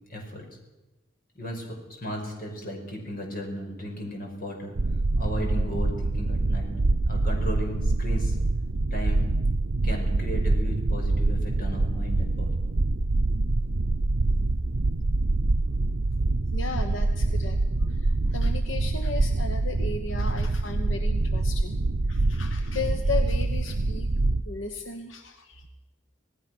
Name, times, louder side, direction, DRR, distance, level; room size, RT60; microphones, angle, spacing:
voice 1, 0.1-0.4 1.3-4.8 5.2-6.7 7.1-8.4 8.9-9.2 9.8-12.6, equal, 50° left, 1 dB, 5.8 m, -35 dB
sound 1, 4.8-24.4, right 2 dB, 75° right, 0.7 m, -25 dB
voice 2, 16.5-17.6 17.9-24.1 24.4-25.7, left 3 dB, 80° left, 7 dB, 1.2 m, -35 dB
26.5 x 18.0 x 6.2 m, 1.1 s
head